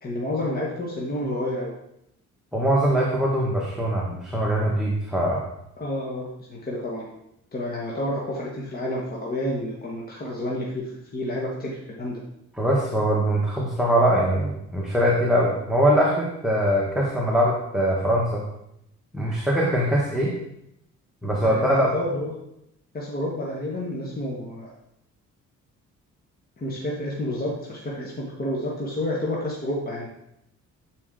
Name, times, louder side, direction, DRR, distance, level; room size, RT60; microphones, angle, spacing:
voice 1, 0.0-1.7 5.8-7.0 7.5-12.2 21.4-22.3 22.9-24.7 26.6-30.1, left 1 dB, 30° left, -3 dB, 1.3 m, -30 dB
voice 2, 2.5-5.4 12.6-18.4 19.1-20.3 21.2-21.9, equal, ahead, -4 dB, 1.2 m, -22 dB
8.3 x 4.3 x 3.8 m, 0.80 s
cardioid pair, 90°, 30 cm